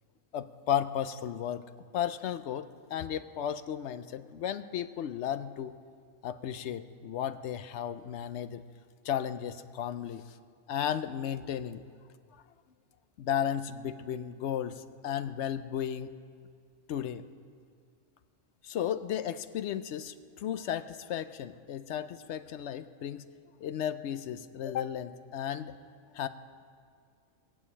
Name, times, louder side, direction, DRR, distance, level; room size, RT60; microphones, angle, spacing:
voice 1, 0.3-1.6 1.9-5.7 6.2-8.6 9.0-10.2 10.7-11.8 13.2-16.1 16.9-17.3 18.6-23.3 23.6-25.7 26.1-26.3, left 9 dB, 70° left, 12 dB, 0.9 m, -34 dB
19.5 x 7.3 x 8.4 m, 2.1 s
omnidirectional pair, 1.3 m